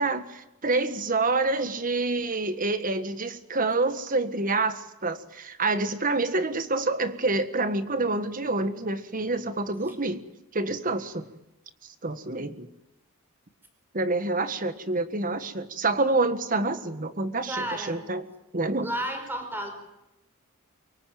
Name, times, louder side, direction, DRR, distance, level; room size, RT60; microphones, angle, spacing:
voice 1, 0.0-10.3 10.5-11.3 12.0-12.7 13.9-18.3 18.5-18.9, right 3 dB, 40° right, 11 dB, 1.6 m, -27 dB
voice 2, 17.5-18.0 18.8-19.7, right 1 dB, 10° right, 6 dB, 4.9 m, -32 dB
24.0 x 23.5 x 9.2 m, 0.89 s
head